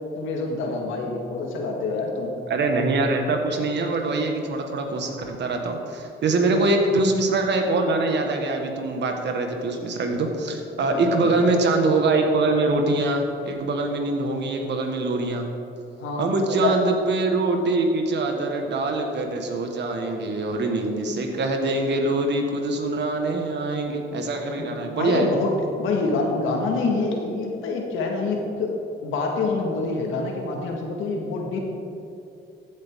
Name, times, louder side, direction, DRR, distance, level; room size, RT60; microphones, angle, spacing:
voice 1, 0.1-2.3 6.4-6.6 10.9-11.6 16.0-16.3 16.6-16.8 24.6-28.7 29.0-31.6, left 3 dB, 90° left, 1 dB, 1.7 m, -26 dB
voice 2, 2.5-15.4 16.2-25.3, right 2 dB, 60° right, 3 dB, 1.6 m, -24 dB
15.0 x 8.0 x 3.7 m, 2.6 s
cardioid pair, 90°, 20 cm